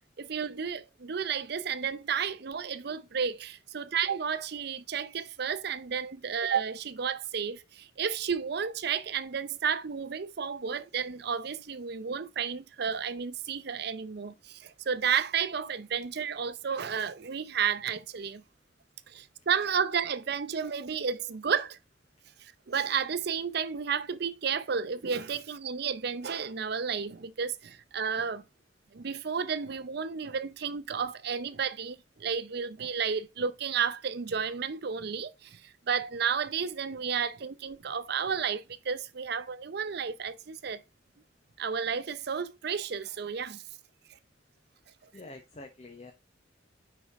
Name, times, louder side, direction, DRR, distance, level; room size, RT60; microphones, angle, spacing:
voice 1, 0.2-18.4 19.1-21.8 22.4-28.4 28.9-35.6 35.9-40.8 41.6-43.6, right 6 dB, 60° right, 0.6 m, -32 dB
voice 2, 45.1-46.1, left 2 dB, 35° left, 0.8 m, -46 dB
5.5 x 5.0 x 3.5 m
head